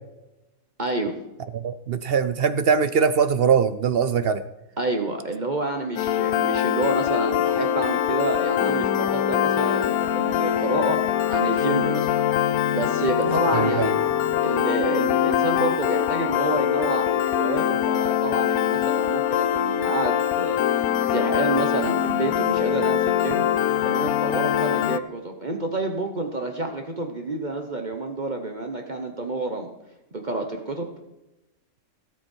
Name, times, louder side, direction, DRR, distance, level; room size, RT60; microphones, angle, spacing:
voice 1, 0.8-1.2 4.8-12.3 12.7-13.9 14.4-20.6 21.1-23.4 23.8-29.7 30.1-30.9, right 2 dB, 35° right, 3 dB, 1.2 m, -28 dB
voice 2, 1.6-4.4 13.5-13.9, right 6 dB, 55° right, 13 dB, 0.7 m, -21 dB
Piano, 6.0-25.0, left 10 dB, 85° left, 1.1 m, -23 dB
17.0 x 8.1 x 4.5 m, 0.98 s
omnidirectional pair, 1.5 m